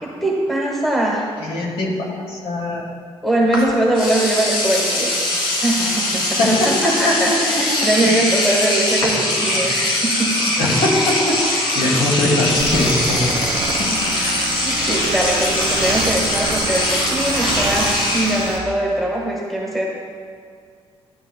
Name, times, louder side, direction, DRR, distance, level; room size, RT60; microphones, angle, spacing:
voice 1, 0.0-1.3 1.7-1.8 3.2-5.1 5.4-10.5 14.6-19.9, right 1 dB, ahead, -3 dB, 1.2 m, -21 dB
voice 2, 1.4-2.8 6.4-7.9 9.5-9.6 10.6-13.3 13.8-14.1, left 1 dB, 70° left, -3 dB, 2.3 m, -21 dB
Engine / Domestic sounds home sounds, 3.5-3.6 3.9-18.6, left 1 dB, 55° left, 1.9 m, -21 dB
sound 1, 12.6-18.6, right 5 dB, 70° right, 1.1 m, -28 dB
12.5 x 10.0 x 2.2 m, 2.2 s
cardioid pair, 175°, 10 cm